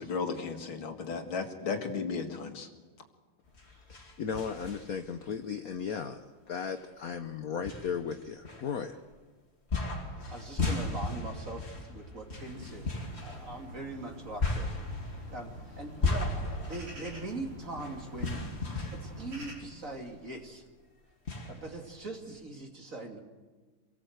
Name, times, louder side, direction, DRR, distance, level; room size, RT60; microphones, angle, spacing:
voice 1, 0.0-2.7, left 5 dB, 70° left, 4 dB, 2.7 m, -34 dB
sound 1, 3.5-5.2 5.7-5.8 6.8-6.9 7.7-9.1 9.7-20.1 20.4-20.5 21.3-22.3, left 3 dB, 30° left, 2.9 m, -36 dB
voice 2, 3.6-6.2 6.5-9.0, left 6 dB, 55° left, 7 dB, 1.2 m, -36 dB
voice 3, 10.3-14.7 15.3-18.4 18.9-20.6 21.5-23.2, right 2 dB, 40° right, 2 dB, 2.8 m, -42 dB
sound 2, 12.3-19.5, equal, 85° right, 6.5 m, -47 dB
26.5 x 18.5 x 7.9 m, 1.3 s
omnidirectional pair, 2.3 m